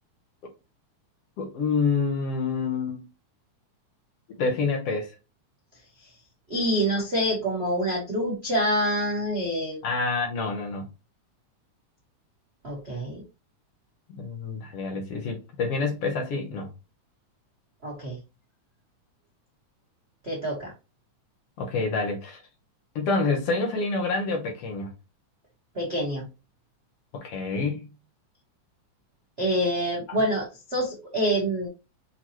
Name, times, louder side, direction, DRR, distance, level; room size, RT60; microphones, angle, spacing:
voice 1, 1.4-3.1 4.4-5.2 9.8-10.9 14.1-16.7 21.6-22.4 23.0-24.9 27.1-27.9 30.1-30.2, left 4 dB, 65° left, 1.6 m, -27 dB
voice 2, 6.5-9.8 12.6-13.2 17.8-18.2 20.3-20.7 25.7-26.3 29.4-31.7, equal, 80° right, 0.5 m, -26 dB
6.3 x 2.9 x 2.9 m
omnidirectional pair, 3.6 m